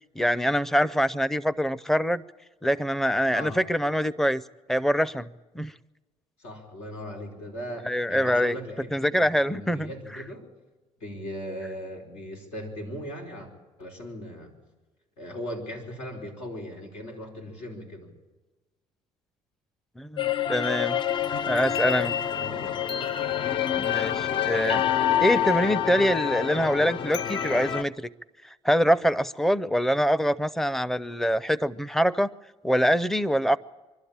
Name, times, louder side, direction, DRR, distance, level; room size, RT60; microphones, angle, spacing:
voice 1, 0.2-2.2 2.6-4.4 4.7-5.3 5.5-5.7 7.9-8.6 8.9-10.2 20.0-21.0 21.5-22.2 23.8-24.8 25.2-28.1 28.6-32.3 32.6-33.6, equal, 5° left, 19 dB, 0.5 m, -24 dB
voice 2, 3.3-3.6 6.4-10.5 11.0-13.5 13.8-14.5 15.2-18.1 22.3-22.8, equal, 85° left, 1 dB, 4.7 m, -38 dB
sound 1, 20.2-27.8, left 10 dB, 50° left, 0.6 m, -27 dB
24.5 x 12.0 x 8.8 m, 1.2 s
cardioid pair, 105°, 11 cm